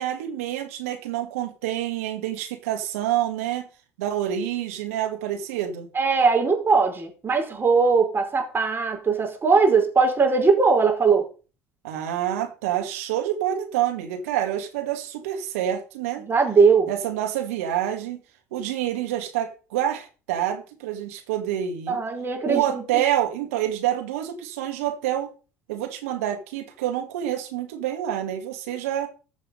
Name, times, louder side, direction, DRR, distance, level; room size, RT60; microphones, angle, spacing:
voice 1, 0.0-3.7 4.0-5.9 11.8-16.2 16.9-18.2 18.5-22.0 22.5-25.3 25.7-29.1, right 11 dB, 75° right, 2.3 m, -27 dB
voice 2, 5.9-11.2 16.2-16.9 21.9-23.0, right 4 dB, 30° right, 5.0 m, -20 dB
14.5 x 6.6 x 5.3 m
hypercardioid pair, 65°, 8 cm